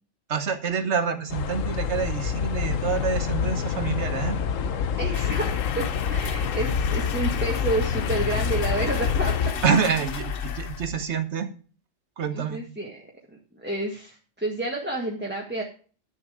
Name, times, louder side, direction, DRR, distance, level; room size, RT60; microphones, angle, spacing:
voice 1, 0.3-4.4 9.6-11.5 12.2-12.6, right 6 dB, 65° right, 10 dB, 1.4 m, -27 dB
sound 1, 1.3-9.5, left 7 dB, 85° left, 1.2 m, -27 dB
voice 2, 5.0-9.5 12.3-13.0 13.6-15.6, right 2 dB, 10° right, -1 dB, 1.5 m, -30 dB
sound 2, 5.1-11.2, left 8 dB, 55° left, 0.8 m, -33 dB
10.5 x 7.2 x 4.9 m, 0.40 s
omnidirectional pair, 1.3 m